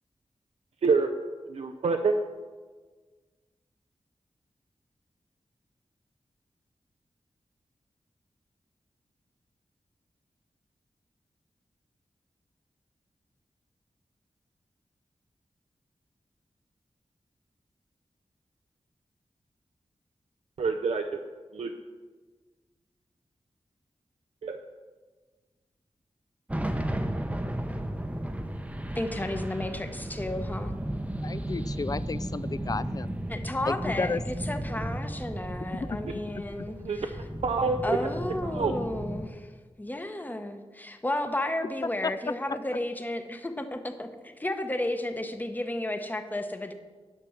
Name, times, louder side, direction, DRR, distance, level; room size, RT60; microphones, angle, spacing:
voice 1, 1.5-2.2 20.6-21.2 21.5-21.7 24.4-24.6 36.8-37.0 37.4-38.0 38.4-38.8, right 4 dB, 75° right, 5 dB, 0.5 m, -26 dB
sound 1, 26.5-39.3, right 1 dB, 10° right, 0.7 m, -34 dB
voice 2, 28.9-30.7 33.3-37.1 37.8-39.5 39.8-46.7, left 1 dB, 15° left, 7 dB, 0.9 m, -33 dB
voice 3, 31.2-33.1 33.7-34.2 35.7-36.7 42.0-42.1, left 4 dB, 35° left, 16 dB, 0.3 m, -33 dB
10.0 x 6.1 x 6.2 m, 1.4 s
wide cardioid pair, 80°, 11 cm